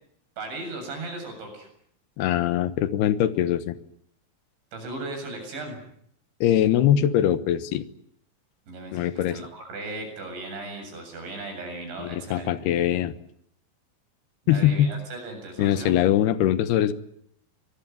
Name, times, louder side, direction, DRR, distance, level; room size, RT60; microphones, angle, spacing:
voice 1, 0.4-1.7 4.7-5.8 8.7-12.5 14.5-16.0, right 2 dB, 60° right, 5 dB, 9.8 m, -37 dB
voice 2, 2.2-3.8 6.4-7.8 8.9-9.4 12.0-13.1 14.5-14.9 15.6-16.9, left 11 dB, 70° left, 13 dB, 2.6 m, -22 dB
25.5 x 21.0 x 9.4 m, 0.70 s
omnidirectional pair, 5.9 m